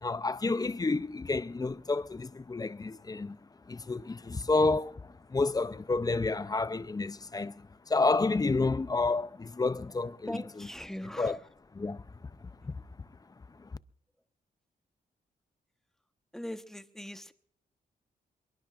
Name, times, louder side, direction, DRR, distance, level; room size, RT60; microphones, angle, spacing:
voice 1, 0.0-3.4 3.7-10.7 11.2-11.4 11.7-12.0 12.6-12.8 13.6-13.7, left 3 dB, 20° left, 0.5 m, -30 dB
voice 2, 10.3-11.3 16.3-17.3, equal, ahead, 1.0 m, -40 dB
23.5 x 22.0 x 2.5 m
cardioid pair, 90°, 17 cm